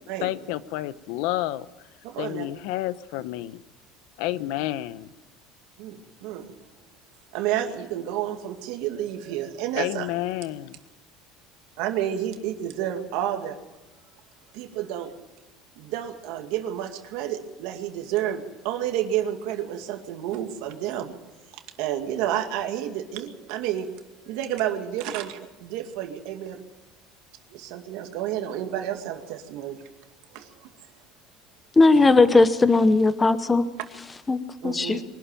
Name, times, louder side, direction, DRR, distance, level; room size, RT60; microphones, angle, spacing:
voice 1, 0.2-1.7 2.2-3.6 4.2-5.1 9.8-10.8, left 15 dB, 70° left, 15 dB, 0.9 m, -30 dB
voice 2, 2.0-2.4 5.8-6.5 7.3-10.1 11.8-13.6 14.5-15.1 15.8-21.1 21.5-23.9 24.2-26.6 27.5-29.8 30.3-30.7 34.6-35.0, right 11 dB, 70° right, 5 dB, 2.2 m, -30 dB
voice 3, 31.8-33.6 34.3-35.0, left 3 dB, 10° left, 12 dB, 0.9 m, -18 dB
23.5 x 12.5 x 9.0 m, 1.1 s
cardioid pair, 170°, 0 cm